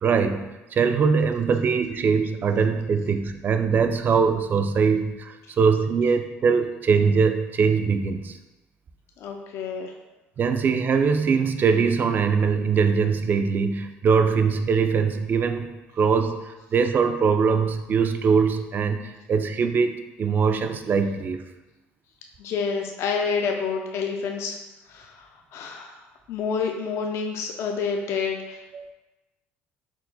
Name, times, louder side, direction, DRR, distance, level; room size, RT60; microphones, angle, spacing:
voice 1, 0.0-8.4 10.4-15.7 16.0-21.4 28.7-28.9, right 5 dB, 40° right, 7 dB, 0.3 m, -22 dB
voice 2, 9.2-9.9 22.4-24.6 24.9-26.0 26.3-28.6, left 5 dB, 60° left, 2 dB, 0.4 m, -28 dB
4.4 x 2.1 x 3.9 m, 1.1 s
supercardioid pair, 95°, 5 cm